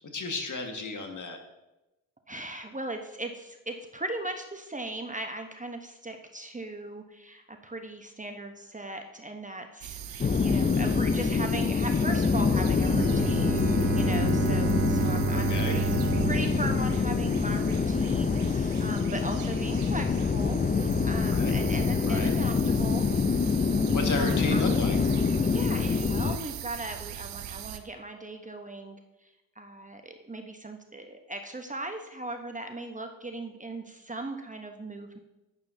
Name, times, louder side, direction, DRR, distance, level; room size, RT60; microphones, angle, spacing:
voice 1, 0.1-1.4 10.1-10.2 15.3-15.8 21.3-21.6 22.1-22.4 23.9-25.0, left 3 dB, 40° left, 4 dB, 1.7 m, -33 dB
voice 2, 2.3-13.6 13.9-15.9 16.2-23.1 24.1-24.6 25.4-35.2, right 2 dB, 15° right, 5 dB, 1.0 m, -38 dB
sound 1, 9.8-27.8, right 10 dB, 75° right, 0.8 m, -41 dB
sound 2, 10.2-26.4, left 5 dB, 20° left, 0.5 m, -26 dB
Bowed string instrument, 12.9-17.8, right 10 dB, 35° right, 0.4 m, -31 dB
11.0 x 9.1 x 2.7 m, 1.0 s
hypercardioid pair, 50°, 44 cm